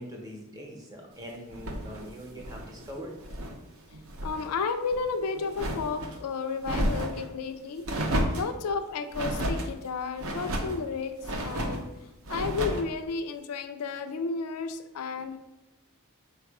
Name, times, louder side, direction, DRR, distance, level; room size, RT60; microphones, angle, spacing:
voice 1, 0.0-3.2, equal, 15° right, 0 dB, 0.8 m, -42 dB
sound 1, 1.5-3.6 3.9-4.5 4.8-6.2 6.6-7.3 7.8-8.5 9.1-9.7 10.2-10.8 11.2-11.8 12.2-12.9, right 1 dB, 70° right, 0.6 m, -32 dB
voice 2, 4.2-7.8 8.3-11.1 11.4-11.9 12.3-15.4, left 4 dB, 85° left, 8 dB, 0.4 m, -32 dB
4.5 x 2.4 x 4.7 m, 1.0 s
head